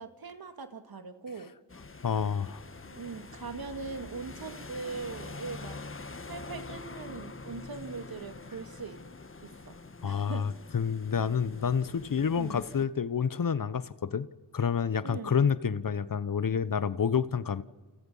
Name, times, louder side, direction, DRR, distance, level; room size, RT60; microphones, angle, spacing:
voice 1, 0.0-1.5 2.9-5.8 6.3-9.0 9.4-9.8 10.0-10.5 12.3-12.6 15.0-15.4, right 4 dB, 60° right, 9 dB, 2.0 m, -41 dB
sound 1, 1.7-12.9, left 3 dB, 30° left, 1.5 m, -45 dB
voice 2, 2.0-2.6 10.0-14.3 14.5-17.6, left 7 dB, 50° left, 16 dB, 1.0 m, -29 dB
30.0 x 29.0 x 5.6 m, 1.5 s
cardioid pair, 50°, 42 cm